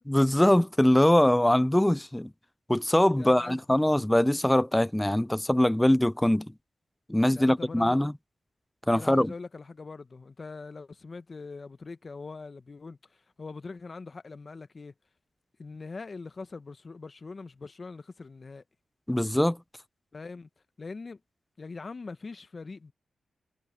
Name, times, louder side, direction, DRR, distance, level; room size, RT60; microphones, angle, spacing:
voice 1, 0.1-2.3 2.7-6.5 7.1-8.1 8.9-9.3 19.1-19.6, left 1 dB, 10° left, 0.4 m, -22 dB
voice 2, 3.2-3.6 7.3-8.0 8.9-14.9 15.6-18.6 20.1-20.5 20.8-21.2 21.6-22.9, left 4 dB, 45° left, 1.0 m, -42 dB
cardioid pair, 55°, 0 cm